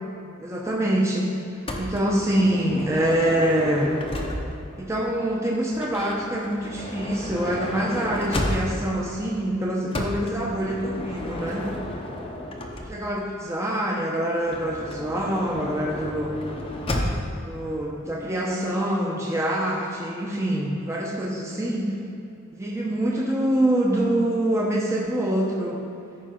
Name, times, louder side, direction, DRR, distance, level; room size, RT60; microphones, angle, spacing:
voice 1, 0.4-1.2 1.8-3.9 4.8-11.7 12.9-16.4 17.4-21.9 22.5-25.8, right 1 dB, 15° right, -3 dB, 0.8 m, -25 dB
Motor vehicle (road) / Sliding door, 1.7-4.7 5.7-9.0 9.9-13.2 14.4-17.4, left 1 dB, 25° left, 0.8 m, -32 dB
13.5 x 5.4 x 3.8 m, 2.7 s
head